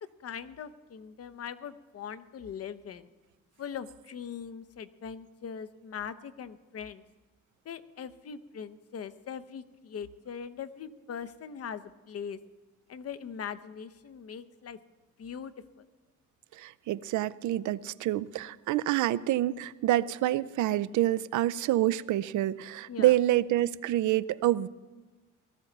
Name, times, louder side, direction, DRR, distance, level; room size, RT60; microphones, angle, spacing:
voice 1, 0.2-3.1 3.6-7.0 7.6-12.4 12.9-14.8 15.2-15.9 22.9-23.1, left 7 dB, 50° left, 13 dB, 0.8 m, -41 dB
voice 2, 16.5-24.7, right 14 dB, 75° right, 17 dB, 0.5 m, -27 dB
18.5 x 13.0 x 4.0 m, 1.3 s
cardioid pair, 90°, 30 cm